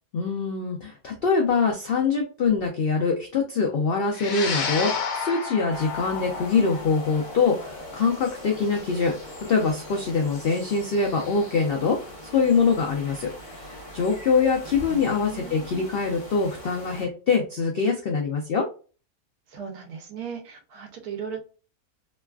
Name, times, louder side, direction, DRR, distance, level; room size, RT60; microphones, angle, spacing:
voice 1, 0.1-9.1 9.5-18.6, left 5 dB, 90° left, 1 dB, 0.5 m, -24 dB
sound 1, 4.1-12.7, left 5 dB, 70° left, 1.1 m, -33 dB
sound 2, 5.7-17.1, equal, 45° left, 1.3 m, -42 dB
voice 2, 14.9-15.9 19.5-21.4, right 6 dB, 85° right, 5 dB, 1.2 m, -37 dB
3.1 x 2.3 x 2.2 m, 0.36 s
omnidirectional pair, 1.6 m